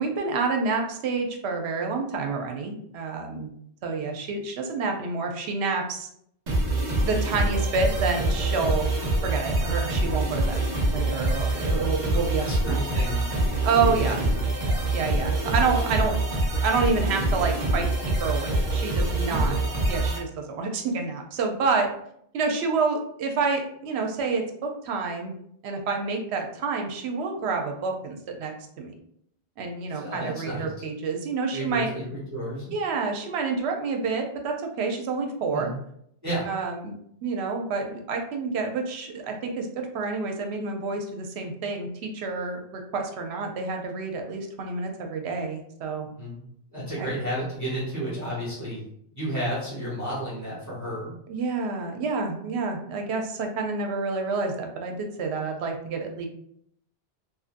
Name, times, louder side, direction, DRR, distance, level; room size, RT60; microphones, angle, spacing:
voice 1, 0.0-3.5 3.8-6.1 7.0-8.9 9.2-10.6 10.9-12.8 13.6-14.2 14.9-16.2 16.6-17.9 18.2-19.5 19.9-21.9 22.3-25.4 25.6-28.9 29.6-31.9 32.7-35.7 36.5-41.9 42.1-46.1 47.0-47.1 51.3-56.3, right 4 dB, 80° right, 3 dB, 0.8 m, -28 dB
sound 1, 6.5-20.2, right 2 dB, 45° right, 0.7 m, -25 dB
voice 2, 12.4-13.3 13.8-14.9 19.3-19.6 29.9-30.7 31.5-32.7 35.5-35.8 36.2-36.5 46.0-46.4 46.7-51.2, right 1 dB, 15° right, -8 dB, 1.0 m, -32 dB
2.7 x 2.5 x 2.4 m, 0.70 s
omnidirectional pair, 1.1 m